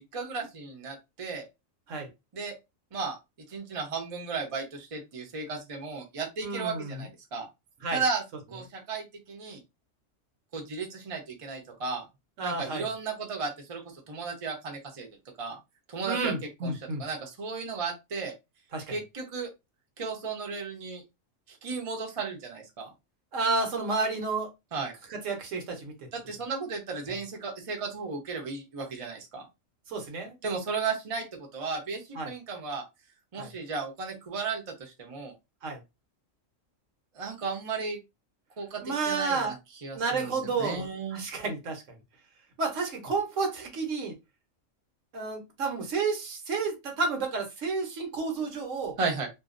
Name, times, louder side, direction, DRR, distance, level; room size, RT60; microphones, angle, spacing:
voice 1, 0.1-1.5 2.3-2.5 2.9-3.2 3.5-7.5 7.9-8.2 8.5-9.6 10.5-12.1 12.4-15.1 15.4-15.6 15.9-16.3 16.6-16.7 17.0-18.3 18.9-19.5 20.0-21.0 21.5-22.9 24.7-24.9 26.1-29.5 30.4-32.8 33.3-35.3 37.1-38.0 38.6-39.6 39.8-41.2 49.0-49.3, right 4 dB, 35° right, 0.6 m, -34 dB
voice 2, 6.4-7.0 7.8-8.0 12.4-12.9 16.0-17.0 18.7-19.0 23.3-24.5 25.1-25.9 29.9-30.3 32.2-32.3 33.4-33.5 35.6-35.8 38.8-39.5 39.9-42.0 42.6-44.1 45.1-49.0, right 4 dB, 75° right, 1.2 m, -31 dB
2.6 x 2.3 x 2.5 m
omnidirectional pair, 1.3 m